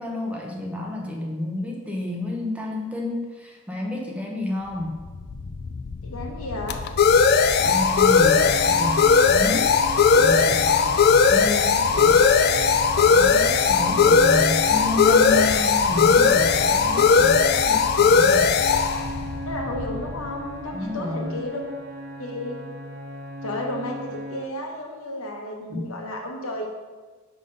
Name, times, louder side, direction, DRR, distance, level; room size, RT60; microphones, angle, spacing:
voice 1, 0.0-5.0 7.6-9.8 10.2-11.0 11.3-12.3 13.1-18.6 20.7-21.5 25.7-25.9, left 2 dB, 5° right, -1 dB, 0.7 m, -30 dB
sound 1, 5.1-20.5, left 5 dB, 45° left, 0.3 m, -18 dB
voice 2, 6.0-6.8 19.4-21.6 22.2-22.6 23.4-26.9, left 1 dB, 75° left, 1 dB, 1.1 m, -32 dB
sound 2, 7.6-24.5, equal, 55° right, 0.6 m, -38 dB
5.3 x 4.0 x 5.3 m, 1.3 s
head